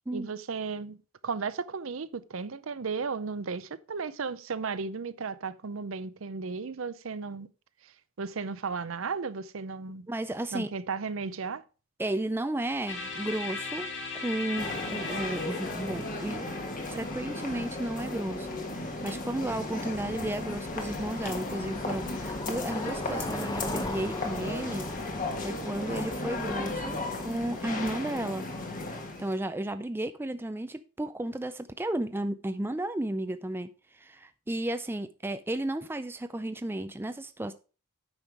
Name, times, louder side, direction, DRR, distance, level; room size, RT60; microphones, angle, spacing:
voice 1, 0.1-1.0 1.2-7.5 7.8-7.9 8.2-10.1 10.5-11.6, right 5 dB, 65° right, 0.6 m, -35 dB
voice 2, 10.1-10.7 12.0-13.9 14.1-16.5 16.9-24.9 25.4-28.5 29.2-37.5, right 1 dB, 10° right, 0.4 m, -33 dB
sound 1, 12.9-18.8, left 4 dB, 60° left, 1.9 m, -39 dB
sound 2, 14.6-29.4, left 2 dB, 40° left, 1.5 m, -35 dB
Bicycle, 16.9-27.8, left 2 dB, 20° left, 0.8 m, -42 dB
9.0 x 5.6 x 4.7 m
head